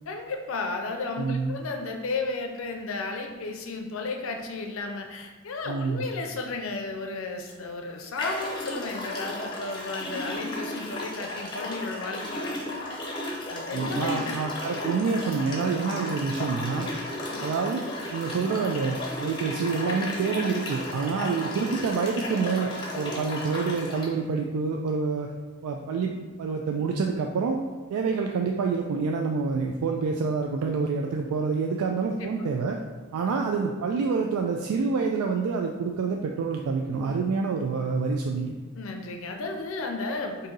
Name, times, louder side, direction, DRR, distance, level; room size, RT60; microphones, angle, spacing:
voice 1, 0.1-12.6 13.5-14.4 17.3-17.5 32.1-32.5 38.8-40.5, left 3 dB, 70° left, 3 dB, 0.5 m, -34 dB
voice 2, 1.2-1.6 5.7-6.1 13.7-16.9 17.4-17.9 18.1-25.3 25.6-27.6 27.9-32.8 33.1-38.5, right 4 dB, 90° right, 2 dB, 0.3 m, -27 dB
Dropping water, 7.4-7.5 8.2-24.1, left 1 dB, 20° left, 0.6 m, -34 dB
4.0 x 2.7 x 3.8 m, 1.3 s
head